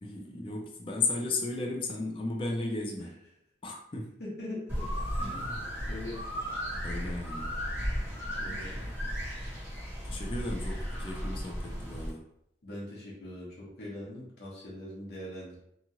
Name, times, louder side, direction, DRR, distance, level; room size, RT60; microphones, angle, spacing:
voice 1, 0.0-3.1 3.6-4.1 5.2-5.6 6.8-7.5 10.0-12.2, left 3 dB, 30° left, 0 dB, 0.4 m, -35 dB
voice 2, 4.2-5.4 5.9-6.2 8.4-8.9 12.6-15.6, left 1 dB, 65° left, -6 dB, 0.9 m, -42 dB
sound 1, 4.7-12.1, equal, 10° right, 1.0 m, -35 dB
2.9 x 2.4 x 2.7 m, 0.78 s
head